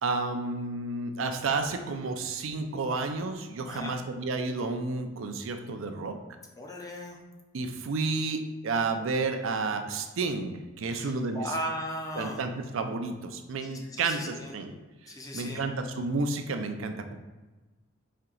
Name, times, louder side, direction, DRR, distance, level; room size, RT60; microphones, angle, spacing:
voice 1, 0.0-6.2 7.5-11.5 12.1-14.7 15.0-17.2, right 3 dB, 70° right, 6 dB, 0.4 m, -31 dB
voice 2, 3.7-4.0 6.6-7.2 10.9-12.4 13.9-14.5 15.1-15.6, equal, 15° left, 1 dB, 0.5 m, -37 dB
4.3 x 2.8 x 3.8 m, 1.2 s
head